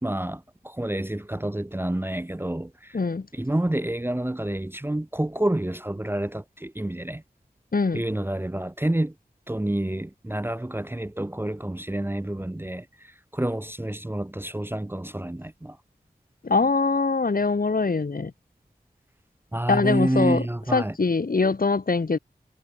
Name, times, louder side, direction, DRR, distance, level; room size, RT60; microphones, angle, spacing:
voice 1, 0.0-3.0 3.3-7.2 7.9-9.1 9.5-15.8 19.5-21.0, right 1 dB, 15° right, 0.7 m, -28 dB
voice 2, 2.9-3.3 7.7-8.0 16.4-18.3 19.7-20.4 20.7-22.2, left 4 dB, 65° left, 1.7 m, -23 dB
wide cardioid pair, 45°, 16 cm